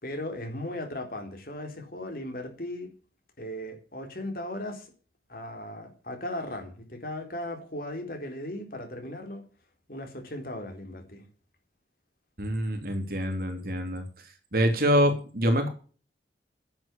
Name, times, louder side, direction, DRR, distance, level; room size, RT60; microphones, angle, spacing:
voice 1, 0.0-2.9 3.4-4.9 5.3-9.4 9.9-11.2, left 1 dB, 50° left, 3.9 m, -37 dB
voice 2, 12.4-14.0 14.5-15.7, equal, 55° right, 3.2 m, -25 dB
10.5 x 7.9 x 8.6 m
head